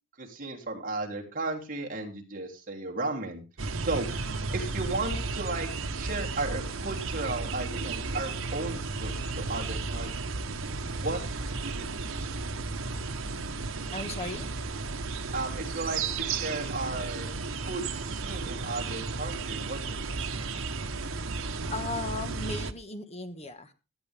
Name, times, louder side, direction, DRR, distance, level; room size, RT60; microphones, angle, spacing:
voice 1, 0.2-3.4 3.8-4.1 4.5-10.4 11.0-11.2 11.6-12.2 15.3-17.3 17.6-20.3, right 2 dB, 40° right, 0 dB, 3.0 m, -35 dB
sound 1, 3.6-22.7, right 3 dB, 80° right, 1.1 m, -34 dB
voice 2, 13.9-14.5 21.7-23.7, left 2 dB, 30° left, 8 dB, 1.3 m, -36 dB
17.0 x 12.0 x 3.5 m, 0.30 s
head